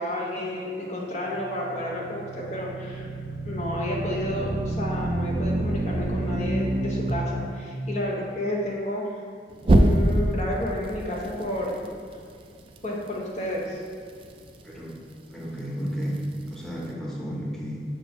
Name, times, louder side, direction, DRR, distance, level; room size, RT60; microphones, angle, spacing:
voice 1, 0.0-3.1 3.4-9.2 9.7-11.7 12.8-13.8, left 1 dB, 40° left, -3 dB, 0.8 m, -31 dB
sound 1, 1.3-7.1 9.6-10.4, right 1 dB, 30° right, 0.4 m, -26 dB
voice 2, 15.3-16.2 16.5-17.8, equal, 5° left, -5 dB, 0.9 m, -32 dB
6.1 x 6.1 x 3.0 m, 2.3 s
head